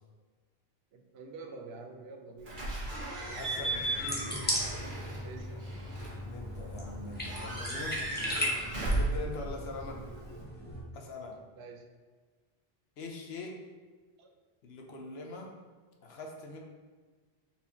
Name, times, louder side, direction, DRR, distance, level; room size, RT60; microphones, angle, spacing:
voice 1, 0.9-2.7 5.2-5.8 11.6-11.9 14.2-14.3, right 3 dB, 80° right, 3 dB, 0.8 m, -47 dB
Slam / Squeak / Alarm, 2.5-10.4, right 1 dB, 50° right, 1.1 m, -36 dB
voice 2, 3.3-4.4 6.2-8.0 8.9-10.0 10.9-11.4 13.0-13.6 14.6-15.5 16.0-16.6, left 2 dB, 75° left, 1 dB, 0.9 m, -43 dB
sound 1, 3.3-10.8, equal, 10° left, 0.6 m, -38 dB
4.3 x 2.9 x 3.4 m, 1.4 s
omnidirectional pair, 1.1 m